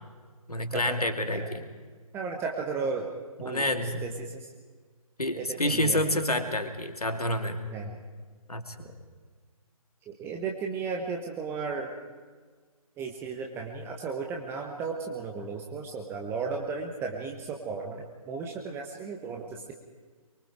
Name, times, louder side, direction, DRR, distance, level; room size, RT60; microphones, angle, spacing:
voice 1, 0.5-1.7 3.4-4.0 5.2-7.6 8.5-8.9, left 1 dB, 85° left, 7 dB, 2.6 m, -28 dB
voice 2, 2.1-3.1 3.4-4.5 5.3-6.0 7.7-8.0 10.1-11.9 13.0-19.7, right 5 dB, 10° right, 1 dB, 1.3 m, -35 dB
24.0 x 23.5 x 5.0 m, 1.5 s
figure-of-eight pair, 140°, 19 cm